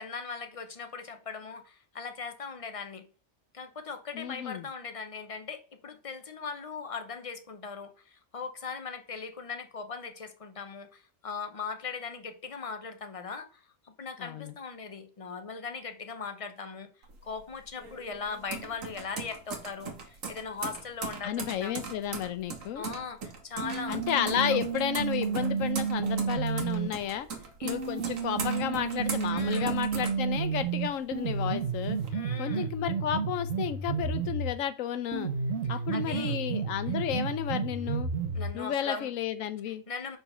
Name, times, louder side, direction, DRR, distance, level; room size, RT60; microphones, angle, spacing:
voice 1, 0.0-3.0 3.5-16.9 17.2-21.7 22.7-24.0 24.3-24.6 27.6-27.8 29.3-29.7 32.1-32.7 35.7-36.4 38.3-39.1 39.9-40.2, left 5 dB, 35° left, 0.6 m, -39 dB
voice 2, 4.1-4.7 14.2-14.5 21.2-22.8 23.9-27.3 27.6-32.0 32.4-35.3 35.7-38.1 38.5-39.8, left 10 dB, 85° left, 1.1 m, -32 dB
sound 1, 17.0-30.9 31.2-32.1, right 5 dB, 85° right, 1.5 m, -40 dB
sound 2, 23.6-26.9 27.6-34.6 35.1-38.6, right 5 dB, 60° right, 1.1 m, -31 dB
4.7 x 4.1 x 5.4 m
omnidirectional pair, 1.3 m